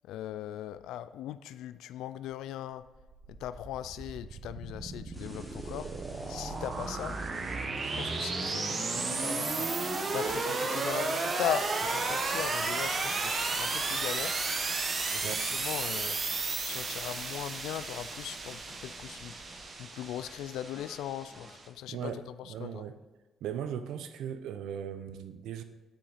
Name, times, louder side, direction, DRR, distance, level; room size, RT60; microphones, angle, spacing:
voice 1, 0.0-2.8 3.3-5.9 6.3-7.2 7.9-14.4 15.1-16.2 16.6-19.5 19.8-22.1 22.4-22.8, left 11 dB, 90° left, 14 dB, 0.3 m, -39 dB
sound 1, 2.9-21.6, right 3 dB, 45° right, 1.1 m, -33 dB
sound 2, 5.1-21.7, right 1 dB, 10° right, 2.0 m, -53 dB
voice 2, 21.9-23.0 23.4-25.6, right 8 dB, 85° right, 10 dB, 0.6 m, -38 dB
10.5 x 5.6 x 4.1 m, 1.1 s
cardioid pair, 90°, 0 cm